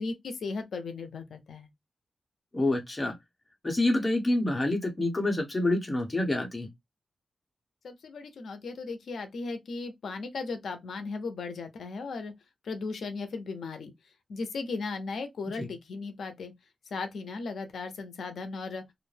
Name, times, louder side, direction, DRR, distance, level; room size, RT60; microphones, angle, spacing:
voice 1, 0.0-1.7 7.8-12.3 12.6-13.9 14.3-16.5 16.9-18.8, left 4 dB, 90° left, 0.6 m, -36 dB
voice 2, 2.5-3.2 3.6-6.7 15.6-15.7, left 2 dB, 25° left, 0.9 m, -27 dB
2.5 x 2.1 x 3.2 m
wide cardioid pair, 90°, 0 cm